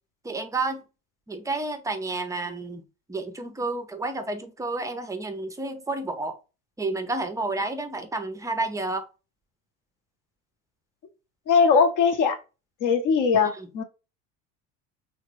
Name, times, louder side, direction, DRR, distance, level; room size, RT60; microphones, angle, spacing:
voice 1, 0.2-0.8 1.3-2.8 3.1-6.3 6.8-9.0 13.6-13.7, right 2 dB, 10° right, 0.4 m, -30 dB
voice 2, 11.5-12.4 12.8-13.8, left 5 dB, 50° left, 0.8 m, -20 dB
2.8 x 2.1 x 3.1 m
hypercardioid pair, 75°, 40 cm